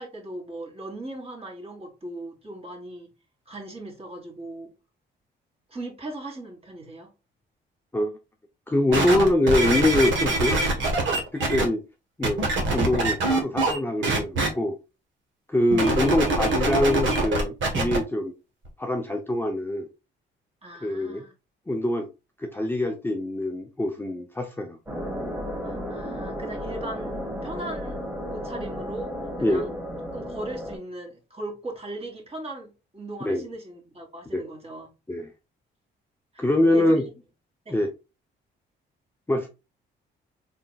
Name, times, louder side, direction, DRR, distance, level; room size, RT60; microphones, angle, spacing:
voice 1, 0.0-3.1 3.5-4.7 5.7-7.1 20.6-21.3 25.6-29.8 30.1-34.9 36.3-37.0 37.7-37.8, right 1 dB, 30° right, 1.9 m, -38 dB
voice 2, 8.7-10.6 11.0-11.8 12.2-12.4 12.7-14.8 15.5-18.3 18.8-19.9 20.8-21.2 21.7-22.1 22.4-24.8 29.4-29.7 33.2-33.5 34.3-34.4 35.1-35.3 36.4-37.1 37.7-37.9 39.3-39.5, left 1 dB, 10° left, 0.6 m, -24 dB
sound 1, 8.9-11.6 12.2-13.8 14.0-14.5 15.7-18.0 18.6-18.7, right 2 dB, 75° right, 1.4 m, -24 dB
sound 2, 24.9-30.8, equal, 10° right, 2.1 m, -33 dB
4.3 x 3.7 x 2.3 m
cardioid pair, 90°, 20 cm